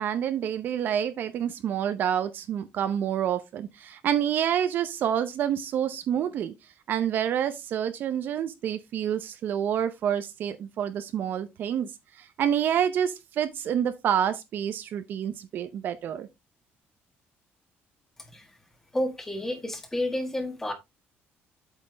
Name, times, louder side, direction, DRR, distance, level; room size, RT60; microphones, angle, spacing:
voice 1, 0.0-6.5 6.9-16.3, right 9 dB, 50° right, 0.7 m, -28 dB
voice 2, 18.9-20.7, left 1 dB, 10° left, 1.5 m, -30 dB
8.2 x 5.7 x 3.3 m
cardioid pair, 180°, 4 cm